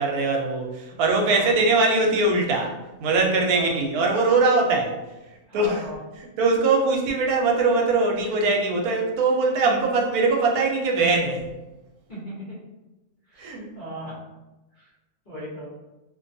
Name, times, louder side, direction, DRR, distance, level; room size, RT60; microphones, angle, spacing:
voice 1, 0.0-2.7 3.0-4.9 5.5-5.8 6.4-11.5 13.4-13.7, right 3 dB, 85° right, 0 dB, 1.1 m, -21 dB
voice 2, 1.3-1.6 3.5-3.7 5.5-6.0 12.1-12.5 13.3-14.2 14.7-14.9 15.3-15.7, right 1 dB, 40° left, -8 dB, 0.8 m, -37 dB
2.5 x 2.2 x 2.6 m, 1.0 s
omnidirectional pair, 1.5 m